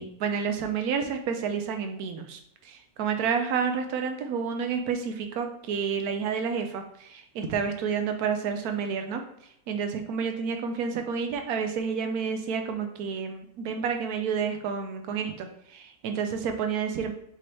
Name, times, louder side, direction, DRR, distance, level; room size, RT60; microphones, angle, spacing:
voice 1, 0.0-2.4 2.6-9.2 9.7-17.1, right 6 dB, 85° right, 6 dB, 1.1 m, -30 dB
5.2 x 2.9 x 3.1 m, 0.73 s
omnidirectional pair, 1.6 m